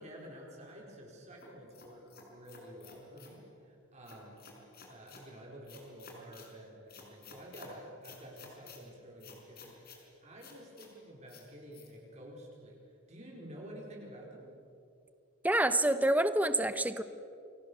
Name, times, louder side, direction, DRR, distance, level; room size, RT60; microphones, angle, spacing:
voice 1, 0.0-4.4 4.8-12.8 13.1-14.5, equal, 30° right, -2 dB, 4.4 m, -50 dB
sound 1, 1.4-3.4 4.0-5.3 5.7-6.5 6.9-7.7 8.0-8.8 9.2-10.0 10.4-10.9 11.3-11.4 11.7-11.9, left 5 dB, 45° left, 4.6 m, -53 dB
voice 2, 15.4-17.0, right 1 dB, 5° right, 11 dB, 0.9 m, -27 dB
29.0 x 22.5 x 6.9 m, 2.5 s
head